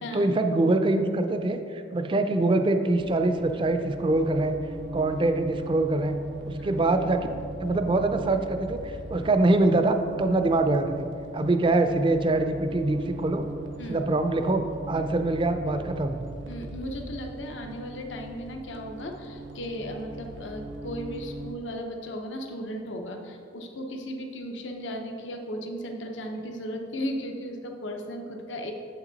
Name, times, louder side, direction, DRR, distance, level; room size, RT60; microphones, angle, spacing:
voice 1, 0.1-4.6 4.9-6.1 6.5-7.2 7.6-11.1 11.3-13.4 13.9-16.3, right 2 dB, 25° right, 7 dB, 0.4 m, -24 dB
sound 1, 2.9-21.5, right 2 dB, 80° right, 0.6 m, -40 dB
voice 2, 16.5-28.7, equal, 85° left, 3 dB, 0.8 m, -36 dB
7.6 x 5.9 x 4.0 m, 2.4 s
head